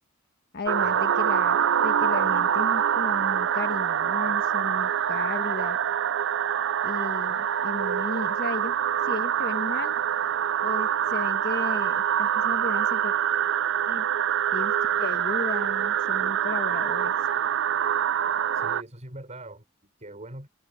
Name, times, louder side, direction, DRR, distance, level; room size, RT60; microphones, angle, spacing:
voice 1, 0.5-5.8 6.8-8.8 9.0-10.0 10.6-13.1 13.9-14.1 14.5-17.3, left 3 dB, 50° left, 1.4 m, -35 dB
sound 1, 0.7-18.8, right 9 dB, 60° right, 0.5 m, -25 dB
voice 2, 18.5-20.5, right 1 dB, 35° right, 5.4 m, -42 dB
head